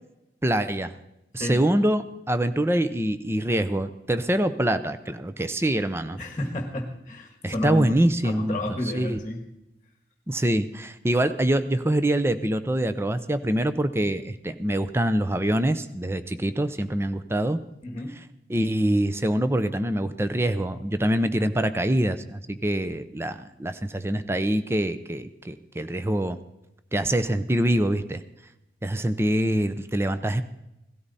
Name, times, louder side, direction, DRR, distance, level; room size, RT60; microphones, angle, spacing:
voice 1, 0.4-1.0 1.3-6.2 7.4-8.6 8.9-9.2 10.3-17.6 18.5-26.4 26.9-28.2 28.8-30.4, right 1 dB, 15° right, 11 dB, 0.6 m, -25 dB
voice 2, 1.4-1.8 6.1-9.4 17.8-18.1 29.6-29.7, left 1 dB, 20° left, 4 dB, 1.5 m, -32 dB
17.0 x 13.0 x 4.1 m, 0.90 s
head